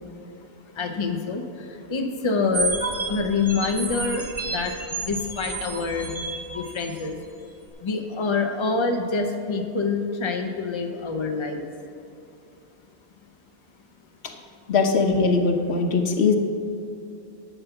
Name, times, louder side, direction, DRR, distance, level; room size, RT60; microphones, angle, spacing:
voice 1, 0.8-1.4 1.9-2.8 3.1-4.7 5.0-6.1 6.5-7.2 7.8-11.6, left 4 dB, 30° left, 4 dB, 0.8 m, -26 dB
sound 1, 2.5-7.1, right 3 dB, 35° right, 1.1 m, -31 dB
voice 2, 14.7-16.4, left 4 dB, 80° left, 5 dB, 1.2 m, -21 dB
10.5 x 7.1 x 5.8 m, 2.7 s
omnidirectional pair, 1.1 m